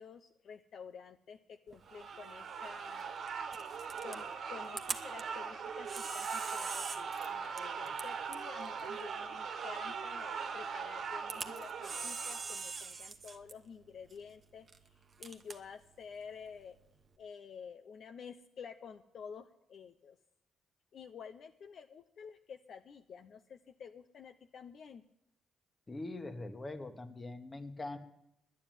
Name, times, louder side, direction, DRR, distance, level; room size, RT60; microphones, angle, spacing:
voice 1, 0.0-3.3 4.0-14.9 15.2-16.8 17.2-20.2 20.9-25.0, left 6 dB, 60° left, 7 dB, 0.7 m, -50 dB
Camera, 1.7-17.1, right 4 dB, 40° right, 1.1 m, -47 dB
Angry Crowd - Fight, 1.8-12.8, right 6 dB, 65° right, 1.4 m, -41 dB
voice 2, 25.9-28.0, left 2 dB, 25° left, 8 dB, 1.4 m, -42 dB
10.5 x 10.0 x 9.1 m, 0.78 s
cardioid pair, 90°, 0 cm